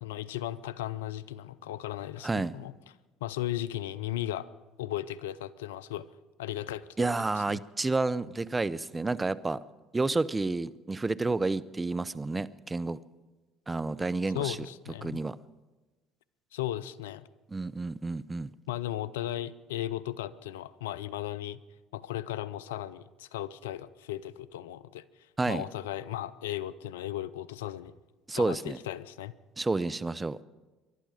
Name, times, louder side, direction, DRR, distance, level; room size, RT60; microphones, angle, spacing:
voice 1, 0.0-2.7 3.2-4.5 4.8-6.1 6.4-7.6 14.3-15.2 16.5-17.3 18.7-21.6 21.9-25.0 25.5-27.9 28.3-29.3, left 13 dB, 85° left, 17 dB, 0.5 m, -36 dB
voice 2, 7.0-9.6 9.9-13.0 13.7-14.6 15.0-15.4 17.5-18.5 25.4-25.6 28.3-28.8 29.6-30.4, right 3 dB, 20° right, 17 dB, 0.6 m, -30 dB
22.0 x 11.5 x 5.1 m, 1.2 s
hypercardioid pair, 70°, 0 cm